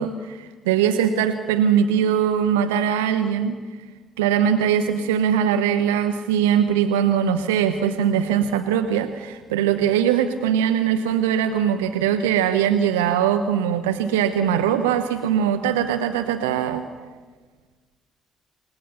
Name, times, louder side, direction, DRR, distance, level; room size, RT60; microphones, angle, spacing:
voice 1, 0.0-3.5 4.2-16.9, right 9 dB, 70° right, 8 dB, 0.9 m, -21 dB
28.5 x 19.0 x 6.9 m, 1.4 s
figure-of-eight pair, 45°, 0 cm